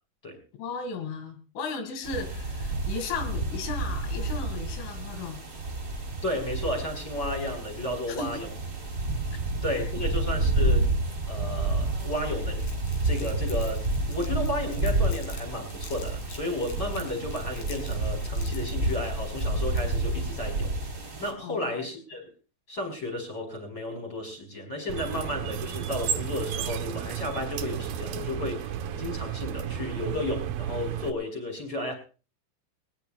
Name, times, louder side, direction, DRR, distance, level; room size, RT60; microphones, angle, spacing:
voice 1, 0.6-5.4 8.1-8.4 21.4-21.9, left 4 dB, 70° left, 7 dB, 4.5 m, -35 dB
sound 1, 2.0-21.3, right 2 dB, 15° right, 3.4 m, -30 dB
voice 2, 6.2-8.5 9.6-10.9 11.3-12.6 13.0-20.7 21.2-22.2 22.7-31.9, left 1 dB, 20° left, 2 dB, 4.8 m, -33 dB
Crumpling crinkling, 12.6-15.4 15.7-20.1, left 5 dB, 50° left, 4.8 m, -48 dB
sound 2, 24.9-31.1, right 9 dB, 85° right, 2.1 m, -33 dB
21.0 x 19.0 x 2.4 m, 0.36 s
omnidirectional pair, 5.8 m